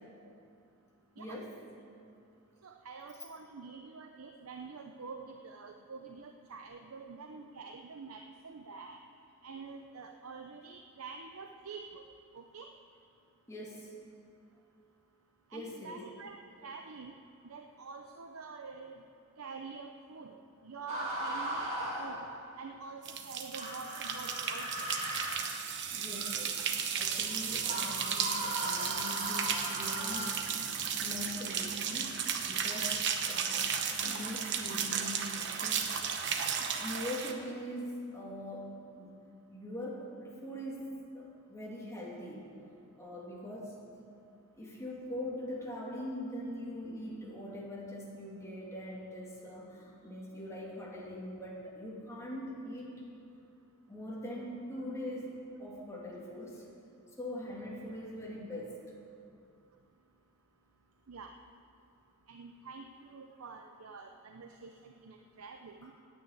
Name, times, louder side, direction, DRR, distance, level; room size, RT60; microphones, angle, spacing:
voice 1, 1.2-1.5 13.5-13.9 15.5-16.1 25.9-26.6 27.0-30.5 31.0-32.2 32.4-33.0 33.2-35.8 36.6-39.2 39.5-40.8 41.1-42.5 43.0-43.7 44.6-52.9 53.9-55.3 55.6-56.6 57.2-58.7, left 1 dB, 15° left, -4 dB, 2.5 m, -42 dB
voice 2, 2.6-9.0 9.4-12.1 12.3-12.7 15.5-16.4 16.6-17.1 17.4-19.0 19.4-20.4 20.6-21.7 22.0-22.2 22.6-24.9 61.1-61.3 62.3-65.9, right 4 dB, 75° right, 4 dB, 0.6 m, -47 dB
sound 1, 20.9-22.6 23.6-30.3, right 1 dB, 30° right, 2.8 m, -38 dB
sound 2, 23.0-37.3, right 7 dB, 55° right, 0.9 m, -34 dB
9.9 x 9.2 x 8.7 m, 2.5 s
head